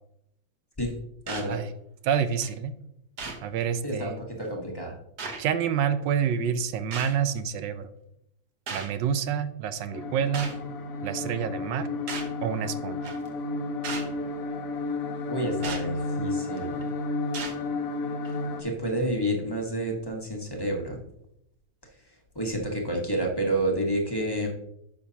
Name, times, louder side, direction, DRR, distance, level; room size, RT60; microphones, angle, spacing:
voice 1, 1.3-1.6 3.8-5.0 15.3-16.8 18.6-21.0 22.3-24.5, right 1 dB, 15° left, 0 dB, 0.9 m, -29 dB
sound 1, 1.3-1.5 2.4-2.5 3.2-3.4 4.4-4.5 5.2-5.4 6.9-7.2 8.7-8.9 10.3-10.6 12.1-12.3 13.0-13.3 13.8-14.1 15.6-15.8 16.6-16.8 17.3-17.6 18.2-18.4, right 4 dB, 55° right, 1.6 m, -36 dB
voice 2, 2.0-2.7 3.4-4.1 5.4-7.9 8.7-10.5 11.0-11.9 12.4-13.1, right 8 dB, 70° right, 12 dB, 1.2 m, -28 dB
sound 2, 9.9-18.6, left 2 dB, 55° left, 1.0 m, -32 dB
10.5 x 6.5 x 2.8 m, 0.80 s
omnidirectional pair, 2.3 m